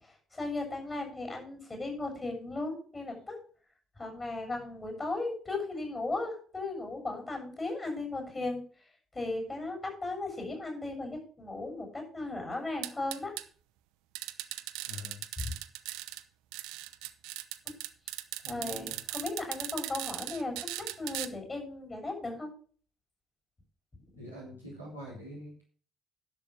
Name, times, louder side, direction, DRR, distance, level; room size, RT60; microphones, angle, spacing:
voice 1, 0.3-3.4 4.0-8.6 9.1-13.3 15.4-15.5 18.5-22.5, left 2 dB, 25° left, 2 dB, 7.0 m, -36 dB
sound 1, 12.8-13.4 14.1-16.2 16.5-21.3, right 17 dB, 65° right, 0.6 m, -38 dB
voice 2, 14.9-15.2 18.4-19.0 24.2-25.6, left 1 dB, 85° left, -5 dB, 3.7 m, -45 dB
11.5 x 6.7 x 6.0 m, 0.43 s
figure-of-eight pair, 50°, 0 cm